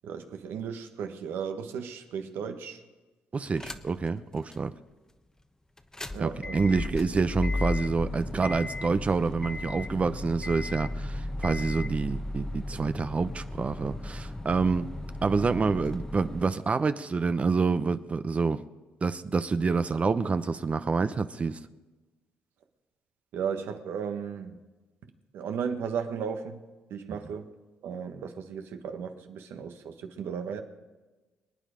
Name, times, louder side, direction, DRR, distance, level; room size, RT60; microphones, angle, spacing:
voice 1, 0.0-2.8 6.1-6.6 23.3-24.6 25.3-26.6 26.9-27.5 27.8-30.6, right 7 dB, 75° right, 1.5 m, -35 dB
voice 2, 3.3-4.8 6.2-14.9 15.2-18.6 19.0-21.6, right 4 dB, 35° right, 0.8 m, -27 dB
sound 1, 3.6-4.1 4.5-4.6 5.8-16.4, left 2 dB, 15° left, 1.1 m, -35 dB
26.0 x 9.1 x 5.1 m
supercardioid pair, 70°, 4 cm